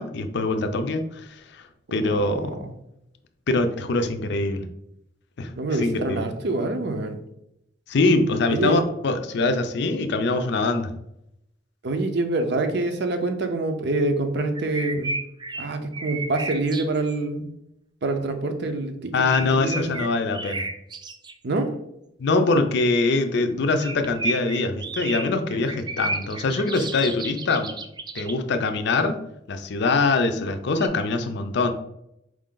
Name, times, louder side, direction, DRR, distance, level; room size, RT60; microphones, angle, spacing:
voice 1, 0.0-1.6 1.9-2.6 3.5-4.7 5.4-5.5 5.8-6.2 7.9-10.9 19.1-20.7 22.2-27.8 28.1-29.2 29.5-31.7, left 3 dB, 65° left, 7 dB, 0.5 m, -23 dB
voice 2, 2.1-2.7 5.6-7.2 8.5-8.8 11.8-15.2 15.6-17.5 18.0-19.1 19.6-19.9 21.4-21.7, right 2 dB, 60° right, 6 dB, 0.6 m, -26 dB
sound 1, 14.5-17.2 19.2-21.3 23.7-28.3 30.4-30.9, right 3 dB, 25° right, 0.3 m, -33 dB
4.7 x 2.5 x 3.7 m, 0.81 s
head